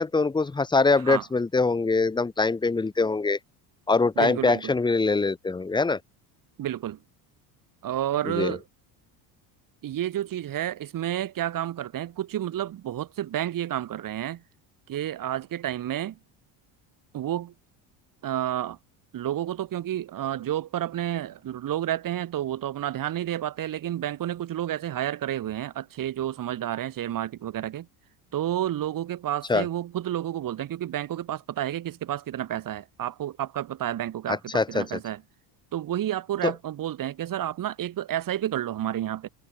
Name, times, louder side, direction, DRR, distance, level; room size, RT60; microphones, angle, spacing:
voice 1, 0.0-3.4 3.9-6.0 8.2-8.6 29.5-29.7 34.3-34.9 36.4-36.5, left 3 dB, 10° left, 1.0 m, -23 dB
voice 2, 4.2-4.7 6.6-7.0 7.8-8.6 9.8-14.4 14.9-16.2 17.1-17.5 18.2-18.8 19.1-27.9 28.3-35.2 35.7-39.3, right 12 dB, 45° right, 6.5 m, -30 dB
cardioid pair, 145°, 46 cm